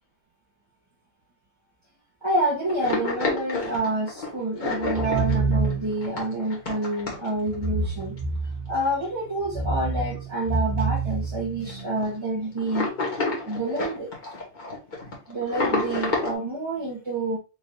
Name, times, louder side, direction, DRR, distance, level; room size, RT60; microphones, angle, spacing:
voice 1, 2.2-8.1 8.7-12.9 13.4-14.1 15.3-17.4, right 1 dB, 25° right, -7 dB, 1.0 m, -28 dB
sound 1, 2.7-7.7 8.0-8.2 9.0-9.1 9.4-9.5 9.9-10.4 10.8-10.9 11.1-11.3 11.6-12.1 12.6-16.3, left 3 dB, 40° left, 1.2 m, -29 dB
sound 2, 4.8-6.1 7.5-8.9 9.4-11.9, right 4 dB, 40° right, 0.7 m, -27 dB
4.1 x 2.7 x 3.1 m, 0.30 s
omnidirectional pair, 1.3 m